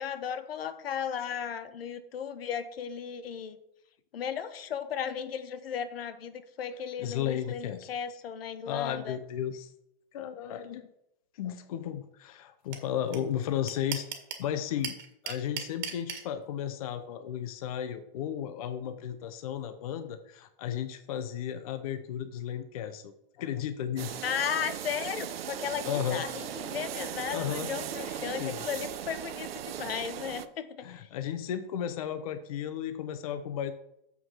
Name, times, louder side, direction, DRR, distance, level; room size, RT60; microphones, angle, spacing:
voice 1, 0.0-3.6 4.1-9.2 24.2-31.1, left 8 dB, 80° left, 12 dB, 1.1 m, -35 dB
voice 2, 7.0-7.9 8.7-9.7 10.1-10.9 11.3-14.1 14.4-15.0 15.2-24.2 25.9-26.2 27.3-27.7 28.3-28.6 30.8-33.7, left 9 dB, 40° left, 10 dB, 0.6 m, -34 dB
sound 1, 12.7-12.8 13.1-13.2 13.4-14.4 14.8-16.2, right 8 dB, 50° right, 1.7 m, -35 dB
sound 2, 24.0-30.5, right 10 dB, 80° right, 0.8 m, -38 dB
7.4 x 5.9 x 5.5 m, 0.80 s
supercardioid pair, 170°, 29 cm